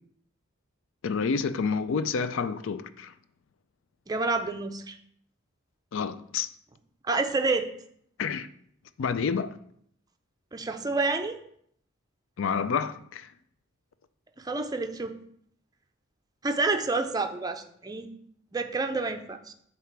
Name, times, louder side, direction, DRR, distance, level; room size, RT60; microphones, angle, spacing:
voice 1, 1.0-3.1 5.9-6.5 8.2-8.5 9.0-9.6 12.4-13.3, left 5 dB, 65° left, 0.4 m, -29 dB
voice 2, 4.1-5.0 7.0-7.7 10.5-11.4 14.4-15.2 16.4-18.1 18.5-19.5, right 3 dB, 20° right, 0.5 m, -28 dB
7.7 x 2.9 x 6.0 m
head